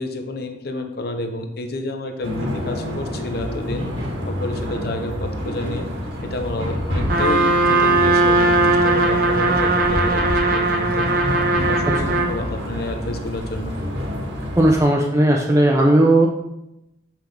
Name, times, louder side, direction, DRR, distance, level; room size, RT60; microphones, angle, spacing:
voice 1, 0.0-3.9 4.2-5.9 6.2-11.1 11.5-13.7, left 2 dB, 55° left, 5 dB, 0.8 m, -29 dB
sound 1, 2.2-14.8, left 1 dB, 75° right, 2.0 m, -28 dB
Trumpet, 7.1-12.4, right 2 dB, 50° right, 0.8 m, -18 dB
voice 2, 14.6-16.3, right 1 dB, 15° right, -1 dB, 0.6 m, -15 dB
7.3 x 5.8 x 3.4 m, 0.87 s
head